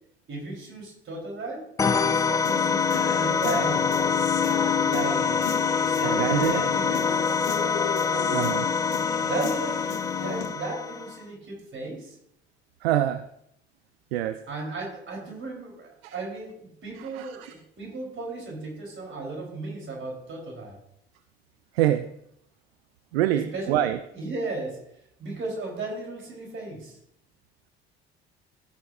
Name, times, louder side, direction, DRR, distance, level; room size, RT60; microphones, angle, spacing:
voice 1, 0.3-1.7 2.0-3.8 4.8-7.2 8.1-8.6 9.2-12.2 14.5-20.8 23.3-24.8 25.2-27.0, right 3 dB, 35° right, -1 dB, 3.8 m, -35 dB
sound 1, 1.8-11.2, left 5 dB, 10° left, 0.3 m, -25 dB
Human voice / Guitar, 2.5-10.5, left 9 dB, 65° left, 1.2 m, -32 dB
voice 2, 6.0-6.6 8.3-8.6 12.8-13.3 14.1-14.4 16.0-16.1 17.0-17.5 21.7-22.1 23.1-24.0, right 12 dB, 65° right, 12 dB, 0.5 m, -25 dB
15.0 x 6.9 x 2.6 m, 0.75 s
figure-of-eight pair, 55°, 33 cm